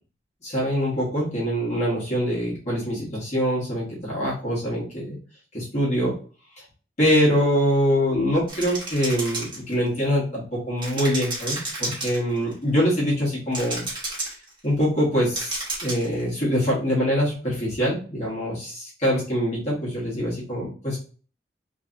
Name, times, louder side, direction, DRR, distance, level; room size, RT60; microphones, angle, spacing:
voice 1, 0.4-5.2 5.5-6.1 7.0-13.8 14.6-21.0, equal, 35° left, -6 dB, 1.1 m, -24 dB
sound 1, 8.5-10.0 10.8-12.5 13.5-14.5 15.3-16.2, right 2 dB, 25° right, 1.1 m, -31 dB
3.1 x 2.7 x 2.5 m, 0.39 s
head